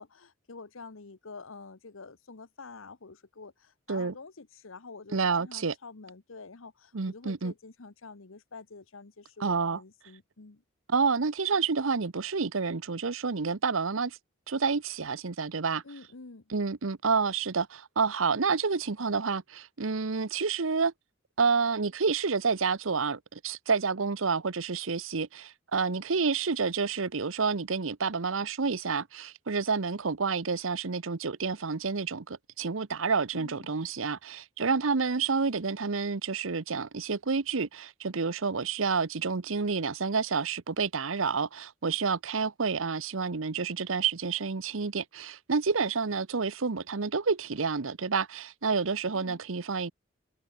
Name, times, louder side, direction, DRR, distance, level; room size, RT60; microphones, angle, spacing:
voice 1, 0.0-10.6 15.8-16.5 33.3-33.7 49.1-49.4, left 4 dB, 75° left, 1.1 m, -47 dB
voice 2, 5.1-5.7 6.9-7.5 9.4-9.8 10.9-14.2 14.5-15.8 16.5-20.9 21.4-49.9, right 5 dB, 75° right, 0.9 m, -29 dB
head